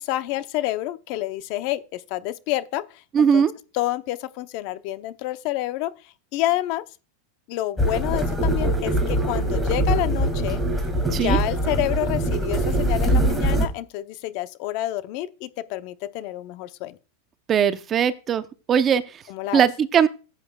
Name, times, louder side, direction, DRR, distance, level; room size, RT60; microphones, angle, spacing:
voice 1, 0.0-2.8 3.2-3.4 3.7-5.9 6.3-6.8 7.5-10.6 11.2-17.0 19.3-19.6, left 15 dB, 50° left, 0.7 m, -28 dB
voice 2, 3.1-3.5 11.1-11.4 17.5-18.4 18.7-19.2 19.5-20.1, right 8 dB, 25° right, 0.7 m, -19 dB
sound 1, 7.8-13.6, right 1 dB, 5° right, 2.2 m, -22 dB
14.5 x 8.3 x 2.3 m
supercardioid pair, 135°, 0 cm